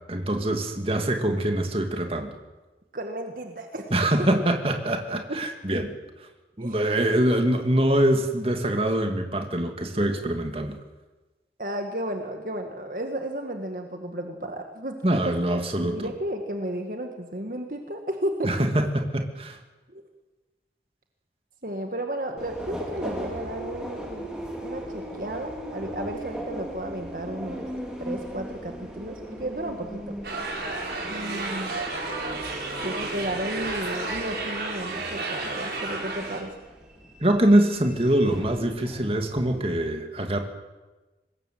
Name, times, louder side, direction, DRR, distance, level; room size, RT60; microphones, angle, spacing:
voice 1, 0.1-2.3 3.9-5.9 6.6-10.8 15.0-16.1 18.4-19.6 37.2-40.4, right 1 dB, 30° right, 4 dB, 2.5 m, -24 dB
voice 2, 2.9-3.9 5.3-5.4 6.6-6.8 11.6-18.5 19.9-20.0 21.6-24.3 24.6-27.7 28.0-30.2 31.1-31.8 32.8-36.6, right 1 dB, 50° right, 4 dB, 1.9 m, -33 dB
Subway metro underground, 22.4-39.6, equal, 5° right, 4.1 m, -39 dB
sound 1, 30.2-36.4, right 3 dB, 65° right, 5.7 m, -32 dB
25.0 x 20.5 x 7.8 m, 1.2 s
head